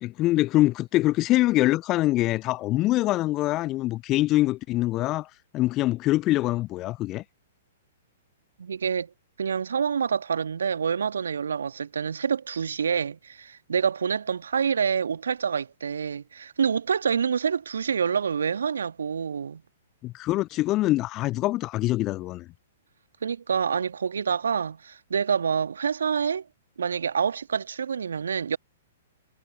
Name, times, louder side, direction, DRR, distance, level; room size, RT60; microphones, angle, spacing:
voice 1, 0.0-5.3 5.5-7.2 20.0-22.5, left 17 dB, 30° left, 0.3 m, -24 dB
voice 2, 8.6-9.1 9.4-19.6 23.2-26.4 26.8-28.6, right 6 dB, 65° right, 1.5 m, -27 dB
figure-of-eight pair, 110°, 0 cm